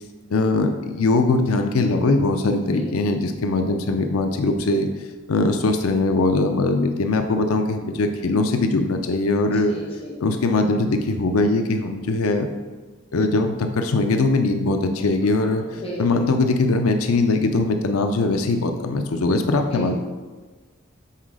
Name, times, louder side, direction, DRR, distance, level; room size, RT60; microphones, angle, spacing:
voice 1, 0.3-4.9 5.3-9.7 10.2-12.5 13.1-20.0, left 3 dB, 85° left, 6 dB, 0.5 m, -21 dB
voice 2, 9.6-10.1 15.3-16.3 19.5-20.0, right 2 dB, 25° left, -4 dB, 1.1 m, -35 dB
5.7 x 4.0 x 4.8 m, 1.3 s
head